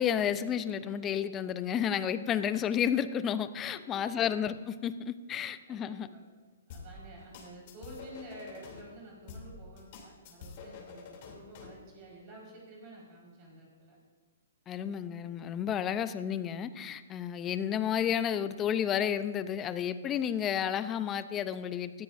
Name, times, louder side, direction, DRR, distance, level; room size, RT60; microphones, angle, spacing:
voice 1, 0.0-6.1 14.7-22.0, left 9 dB, 20° left, 13 dB, 0.6 m, -31 dB
voice 2, 3.7-4.2 5.7-6.2 6.7-14.0, right 1 dB, 35° right, -4 dB, 4.8 m, -50 dB
sound 1, 6.7-8.8 9.3-11.8, left 4 dB, 45° left, 3.0 m, -47 dB
19.0 x 13.5 x 2.7 m, 1.4 s
hypercardioid pair, 145°, 0 cm